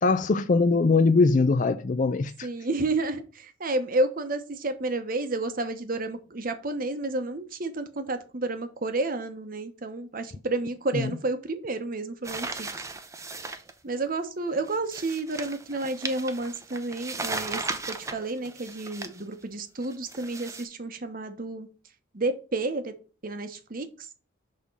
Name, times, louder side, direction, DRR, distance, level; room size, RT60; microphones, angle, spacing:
voice 1, 0.0-2.5 10.9-11.1, left 3 dB, 40° left, 0.4 m, -22 dB
voice 2, 2.4-12.7 13.8-21.7 22.1-22.9 23.2-24.1, right 2 dB, 45° right, 0.9 m, -31 dB
sound 1, 12.2-13.7 14.7-19.2 19.8-20.6, right 3 dB, 15° right, 0.6 m, -36 dB
6.4 x 3.6 x 5.3 m
head